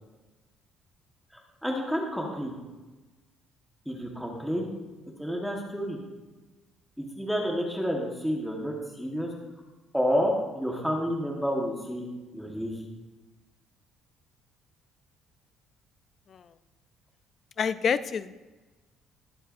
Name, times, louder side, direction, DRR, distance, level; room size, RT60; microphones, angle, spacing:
voice 1, 1.6-2.5 3.9-4.7 5.2-6.0 7.0-9.3 9.9-12.1 12.3-12.8, equal, ahead, -1 dB, 1.3 m, -29 dB
voice 2, 17.6-18.3, left 6 dB, 35° left, 14 dB, 0.4 m, -27 dB
21.0 x 7.9 x 2.6 m, 1.2 s
cardioid pair, 170°, 0 cm